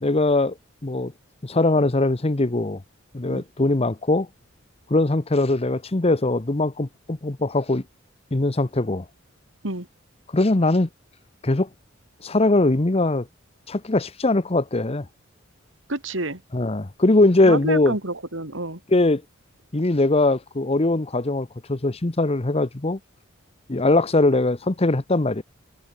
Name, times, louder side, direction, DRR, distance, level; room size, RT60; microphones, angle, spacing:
voice 1, 0.0-0.5 0.8-1.1 1.4-2.8 3.1-4.3 4.9-7.8 8.3-9.0 10.3-10.9 11.4-11.7 12.2-13.3 13.7-15.1 16.5-17.9 18.9-19.2 19.7-23.0 23.7-25.4, left 2 dB, 30° left, 0.9 m, -21 dB
voice 2, 15.9-16.4 17.4-18.8, right 2 dB, 70° right, 4.4 m, -28 dB
head